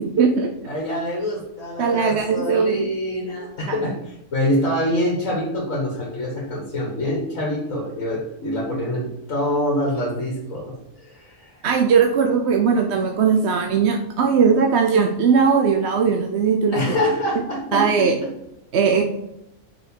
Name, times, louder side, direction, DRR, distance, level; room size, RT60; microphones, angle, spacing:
voice 1, 0.0-0.5 1.8-2.9 11.6-16.8 17.7-18.1 18.7-19.0, right 6 dB, 60° right, 2 dB, 0.9 m, -19 dB
voice 2, 0.6-11.6 16.7-17.8, left 1 dB, 75° left, -1 dB, 1.9 m, -25 dB
5.8 x 4.7 x 5.3 m, 0.83 s
omnidirectional pair, 1.4 m